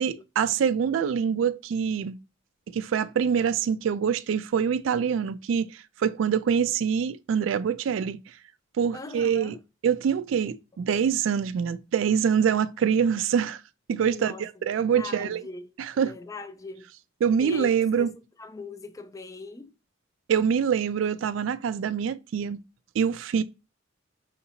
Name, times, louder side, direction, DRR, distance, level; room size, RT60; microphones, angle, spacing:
voice 1, 0.0-2.2 2.7-8.2 8.8-9.6 9.8-13.6 13.9-15.4 15.8-16.1 17.2-18.1 20.3-22.6 23.0-23.4, right 7 dB, 75° right, 0.3 m, -25 dB
voice 2, 8.9-9.6 14.1-16.9 17.4-18.1 18.4-19.7, left 4 dB, 15° left, 0.3 m, -41 dB
5.8 x 2.8 x 2.7 m
head